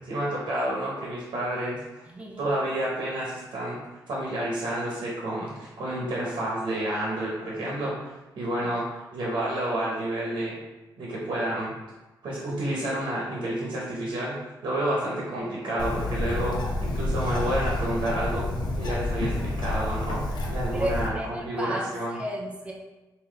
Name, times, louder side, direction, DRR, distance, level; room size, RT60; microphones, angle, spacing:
voice 1, 0.0-2.1 2.4-3.8 4.1-10.5 11.0-11.7 12.2-14.4 14.6-18.5 18.7-22.2, right 1 dB, 70° right, -5 dB, 1.1 m, -30 dB
voice 2, 2.1-2.5 8.6-8.7 20.7-22.7, right 1 dB, 15° right, -1 dB, 0.6 m, -34 dB
Bird, 15.8-21.1, left 2 dB, 65° left, 0.7 m, -29 dB
3.8 x 2.8 x 3.4 m, 1.1 s
cardioid pair, 65°, 8 cm